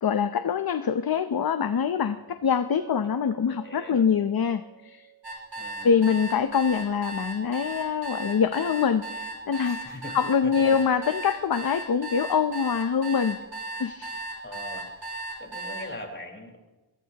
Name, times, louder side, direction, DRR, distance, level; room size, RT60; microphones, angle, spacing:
voice 1, 0.0-5.1 5.8-13.4 13.8-14.2, left 7 dB, 50° left, 10 dB, 0.7 m, -25 dB
voice 2, 2.1-2.4 3.5-4.1 5.5-6.1 9.6-10.1 10.4-10.5 14.4-15.1 15.4-16.6, left 1 dB, 25° left, 0 dB, 4.8 m, -41 dB
Chink clink, 2.7-6.7, right 13 dB, 85° right, 6.4 m, -50 dB
sound 1, 5.2-15.9, right 2 dB, 65° right, 5.4 m, -36 dB
23.0 x 20.5 x 2.9 m, 1.1 s
wide cardioid pair, 95°, 47 cm